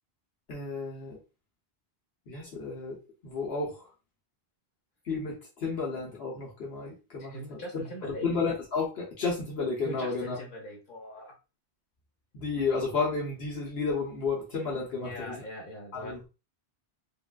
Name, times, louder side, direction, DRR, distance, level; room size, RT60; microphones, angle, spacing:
voice 1, 0.5-1.2 2.3-3.0 3.2-3.9 5.0-7.6 8.2-10.4 12.3-15.3 15.9-16.2, left 4 dB, 75° left, -3 dB, 1.0 m, -32 dB
voice 2, 7.2-8.3 9.8-11.4 15.0-16.3, equal, 55° left, 0 dB, 1.1 m, -41 dB
3.5 x 2.3 x 2.2 m, 0.31 s
omnidirectional pair, 1.1 m